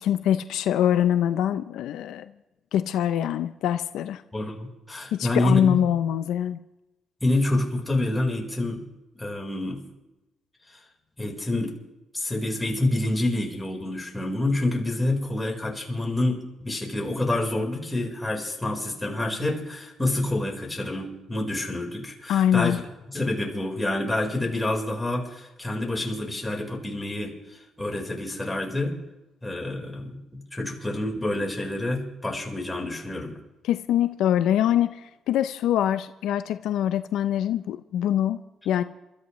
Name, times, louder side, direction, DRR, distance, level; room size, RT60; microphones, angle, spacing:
voice 1, 0.0-2.3 2.7-4.2 5.1-6.6 22.3-22.8 33.6-38.8, left 10 dB, 85° left, 11 dB, 0.5 m, -24 dB
voice 2, 4.3-5.8 7.2-8.8 9.1-9.8 11.2-11.7 12.1-22.8 23.1-29.0 29.4-33.4, left 1 dB, 10° left, 0 dB, 4.3 m, -28 dB
29.0 x 13.5 x 3.2 m, 0.97 s
cardioid pair, 90°, 0 cm